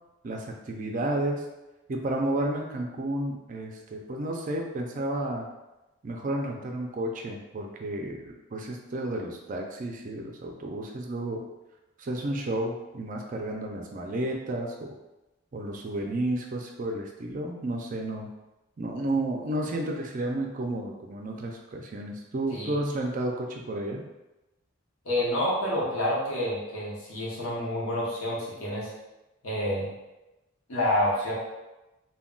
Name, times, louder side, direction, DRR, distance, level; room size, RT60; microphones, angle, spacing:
voice 1, 0.2-1.4 1.9-5.5 6.0-11.4 12.0-14.9 15.5-18.3 18.8-24.0, right 1 dB, 40° right, 2 dB, 0.4 m, -32 dB
voice 2, 25.0-28.9 29.4-29.9 30.7-31.4, left 1 dB, 85° left, -6 dB, 0.9 m, -28 dB
2.2 x 2.2 x 3.7 m, 1.0 s
head